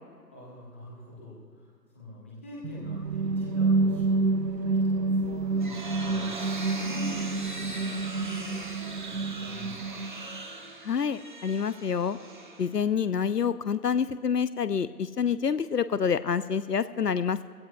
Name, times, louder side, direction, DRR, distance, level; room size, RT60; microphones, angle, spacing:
voice 1, 0.3-1.7 1.9-8.6 9.1-10.0, left 2 dB, 10° left, -5 dB, 1.0 m, -44 dB
sound 1, 2.6-10.4, right 3 dB, 80° right, 0.7 m, -28 dB
sound 2, 5.2-13.1, right 3 dB, 30° right, 1.0 m, -40 dB
voice 2, 10.8-12.2 12.6-17.4, left 7 dB, 70° left, 15 dB, 0.6 m, -27 dB
21.5 x 16.5 x 2.3 m, 2.2 s
figure-of-eight pair, 150°, 50 cm